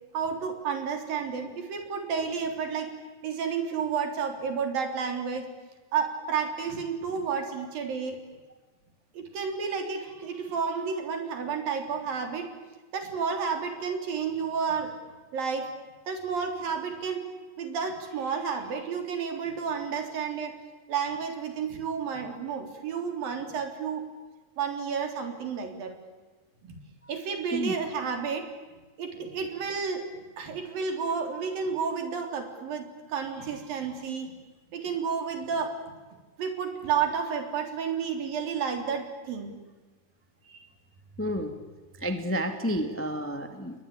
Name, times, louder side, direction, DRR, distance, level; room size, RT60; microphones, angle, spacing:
voice 1, 0.1-2.9 3.2-5.5 5.9-8.2 9.1-12.5 12.9-14.9 15.3-15.7 16.1-17.3 17.6-20.6 20.9-24.0 24.6-26.0 26.6-26.8 27.1-28.5 29.0-30.1 30.4-34.3 34.7-35.7 36.4-39.6 40.5-40.7, right 6 dB, 55° right, 5 dB, 5.1 m, -31 dB
voice 2, 41.2-41.5 42.0-43.8, equal, 10° left, 7 dB, 0.7 m, -30 dB
30.0 x 22.0 x 8.7 m, 1.3 s
omnidirectional pair, 5.0 m